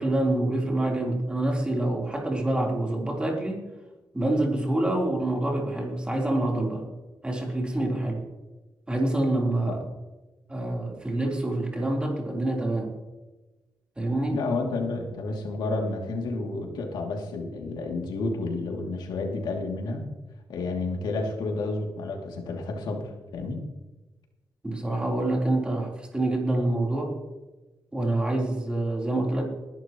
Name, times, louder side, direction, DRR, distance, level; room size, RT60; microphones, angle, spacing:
voice 1, 0.0-3.6 4.1-6.8 7.2-8.2 8.9-9.8 10.5-12.9 14.0-14.4 24.6-27.1 27.9-29.4, right 1 dB, 15° right, -1 dB, 3.7 m, -26 dB
voice 2, 14.3-20.1 20.5-23.6, left 3 dB, 85° left, 1 dB, 2.7 m, -30 dB
20.5 x 12.0 x 3.1 m, 1.1 s
cardioid pair, 120°, 7 cm